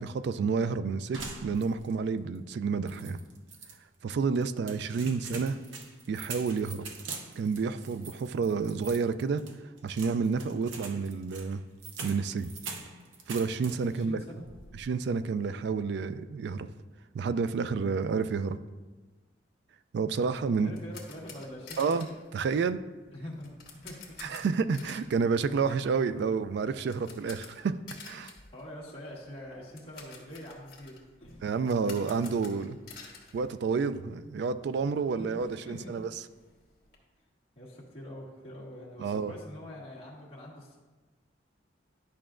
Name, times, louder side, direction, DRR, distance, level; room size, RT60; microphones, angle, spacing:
voice 1, 0.0-3.2 4.0-5.6 6.1-6.8 7.4-9.4 9.8-11.6 12.0-12.5 13.3-14.2 14.8-16.7 17.1-18.6 19.9-20.7 21.8-22.1 22.3-22.8 24.2-27.7 28.0-28.3 31.4-32.8 33.3-36.1 39.0-39.3, right 5 dB, 60° right, 13 dB, 0.3 m, -29 dB
sound 1, 1.1-2.1 2.4-2.5 2.9-3.8 4.4-14.0 14.4-14.9, right 4 dB, 85° right, 0.7 m, -44 dB
voice 2, 4.8-5.2 13.8-14.4 20.1-20.2 20.6-22.0 23.1-23.5 23.8-24.3 26.1-26.2 28.5-31.4 35.2-36.0 37.5-40.8, left 1 dB, 30° left, -5 dB, 1.6 m, -45 dB
sound 2, 20.3-34.3 34.5-34.7 35.1-35.2 35.4-37.0, left 5 dB, 55° left, 1.5 m, -51 dB
10.5 x 5.7 x 2.5 m, 1.3 s
head